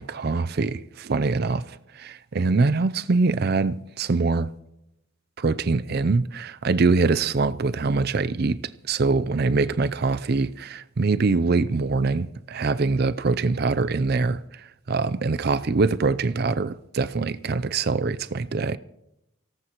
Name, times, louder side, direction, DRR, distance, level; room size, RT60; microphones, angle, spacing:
voice 1, 0.0-4.5 5.4-8.6 8.9-14.4 14.9-18.8, right 4 dB, 45° right, 0.4 m, -23 dB
24.5 x 18.0 x 3.0 m
head